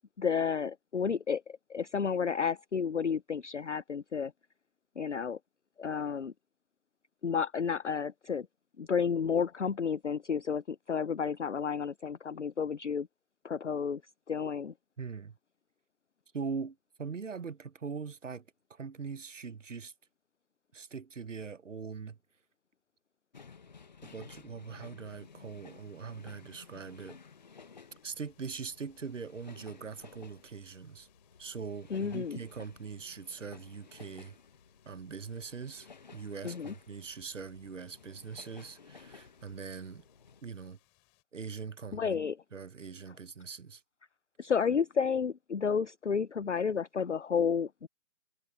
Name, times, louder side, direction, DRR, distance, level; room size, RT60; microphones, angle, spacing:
voice 1, 0.2-4.3 5.0-5.4 5.8-6.3 7.2-8.5 8.8-13.1 13.4-14.0 14.3-14.7 31.9-32.4 36.4-36.7 41.9-42.4 44.4-47.9, left 6 dB, 50° left, 0.7 m, -31 dB
voice 2, 15.0-15.4 16.3-19.9 20.7-22.2 24.0-27.2 28.0-31.1 31.4-34.4 34.8-40.0 40.4-40.8 41.3-42.2 42.5-43.8, right 5 dB, 55° right, 1.0 m, -42 dB
sound 1, 23.3-40.4, left 5 dB, 30° left, 1.1 m, -55 dB
sound 2, 25.0-41.2, left 35 dB, 15° left, 7.0 m, -72 dB
figure-of-eight pair, 150°, 45 cm